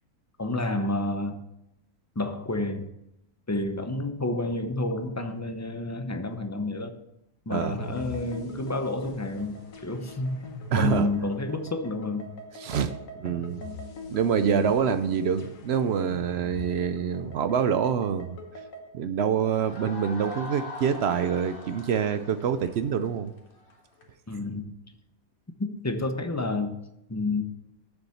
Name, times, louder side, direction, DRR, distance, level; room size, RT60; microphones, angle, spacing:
voice 1, 0.4-1.4 2.2-2.9 3.5-6.9 7.5-9.6 9.8-12.3 14.5-14.8 24.3-24.7 25.6-26.8 27.1-27.4, left 2 dB, 15° left, 6 dB, 0.6 m, -29 dB
sound 1, 7.6-18.9, left 3 dB, 70° left, 1.5 m, -42 dB
voice 2, 10.7-11.1 12.6-13.6 14.1-18.4 18.9-23.3, right 7 dB, 65° right, 11 dB, 0.7 m, -26 dB
sound 2, 19.3-24.1, left 2 dB, 40° left, 1.7 m, -42 dB
7.1 x 6.9 x 7.1 m, 0.84 s
omnidirectional pair, 1.5 m